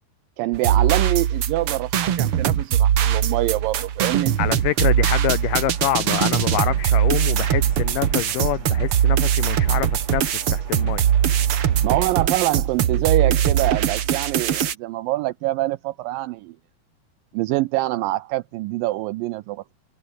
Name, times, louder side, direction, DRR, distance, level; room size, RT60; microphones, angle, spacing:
voice 1, 0.4-4.4 11.8-16.6 17.3-19.6, right 17 dB, 80° right, 2.0 m, -25 dB
sound 1, 0.5-14.7, right 9 dB, 60° right, 1.5 m, -21 dB
voice 2, 4.4-10.3 10.5-11.0, left 14 dB, 75° left, 2.0 m, -26 dB
sound 2, 4.7-12.3, right 5 dB, 45° right, 4.8 m, -46 dB
omnidirectional pair, 4.5 m